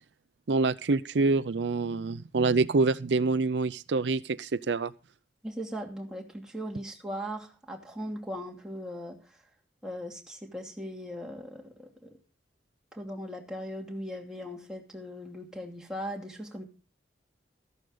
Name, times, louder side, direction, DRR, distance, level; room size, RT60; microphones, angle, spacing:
voice 1, 0.5-4.9, right 3 dB, 80° right, 0.6 m, -26 dB
voice 2, 5.4-9.4 9.8-12.2 12.9-16.6, equal, 5° right, 2.6 m, -39 dB
14.5 x 11.5 x 3.9 m
head